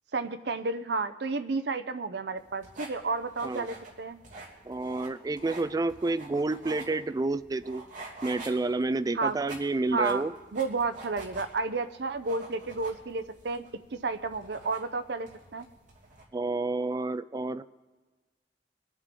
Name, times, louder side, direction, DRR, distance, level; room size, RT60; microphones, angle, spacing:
voice 1, 0.1-4.2 9.1-9.4 9.9-10.2 10.5-13.7 13.9-15.7, right 3 dB, 70° right, 10 dB, 0.6 m, -31 dB
sound 1, 2.4-16.2, right 2 dB, 45° right, 2.9 m, -47 dB
voice 2, 4.7-7.8 8.2-10.3 16.3-17.6, right 2 dB, 20° right, 14 dB, 0.3 m, -29 dB
23.5 x 8.1 x 3.8 m, 1.3 s
head